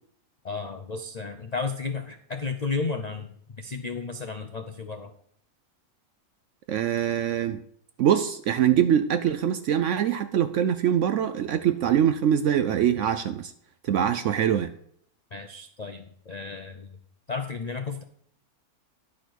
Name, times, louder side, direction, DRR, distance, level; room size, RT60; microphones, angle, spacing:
voice 1, 0.4-3.3 3.6-5.1 15.3-16.9 17.3-18.0, left 4 dB, 65° left, 6 dB, 0.4 m, -33 dB
voice 2, 6.7-7.6 8.0-13.5 13.8-14.7, right 9 dB, 70° right, 10 dB, 0.7 m, -23 dB
10.5 x 5.0 x 6.1 m, 0.66 s
omnidirectional pair, 1.7 m